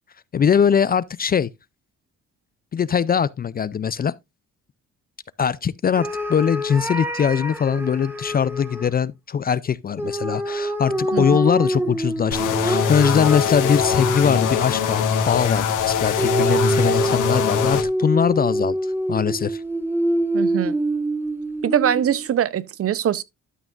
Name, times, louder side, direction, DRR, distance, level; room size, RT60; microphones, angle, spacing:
voice 1, 0.3-1.5 2.7-4.1 5.4-19.6, left 7 dB, 30° left, 0.4 m, -21 dB
sound 1, 5.9-8.9 10.0-14.7 16.2-22.3, right 1 dB, 5° right, 1.6 m, -25 dB
sound 2, 12.3-17.8, left 7 dB, 85° left, 1.7 m, -23 dB
voice 2, 20.3-20.7 21.6-23.2, right 10 dB, 50° right, 0.7 m, -22 dB
12.5 x 6.0 x 2.4 m
cardioid pair, 90°, 30 cm